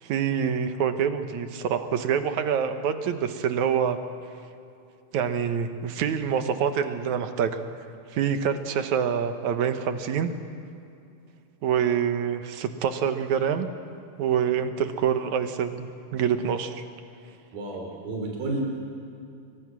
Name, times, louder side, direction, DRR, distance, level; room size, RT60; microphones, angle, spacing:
voice 1, 0.0-4.0 5.1-7.6 8.1-10.3 11.6-13.7 14.2-16.8, right 7 dB, 65° right, 8 dB, 2.3 m, -26 dB
voice 2, 17.5-18.6, right 2 dB, 90° right, 0 dB, 5.0 m, -31 dB
29.5 x 24.0 x 6.2 m, 2.6 s
omnidirectional pair, 3.9 m